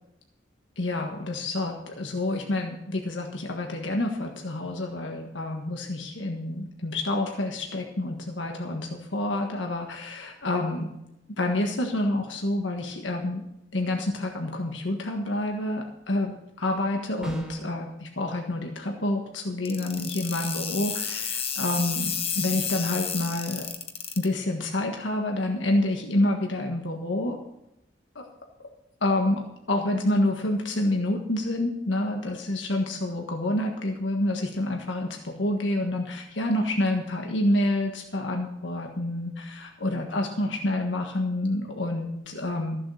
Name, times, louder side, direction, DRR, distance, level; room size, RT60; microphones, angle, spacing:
voice 1, 0.8-10.9 11.4-13.4 13.7-23.7 24.2-27.4 28.1-28.2 29.0-42.8, left 1 dB, 80° left, 1 dB, 1.5 m, -28 dB
sound 1, 17.2-17.8, right 1 dB, 5° right, 2.2 m, -35 dB
sound 2, 19.6-24.2, left 7 dB, 30° left, 1.1 m, -31 dB
14.5 x 7.5 x 6.4 m, 0.83 s
head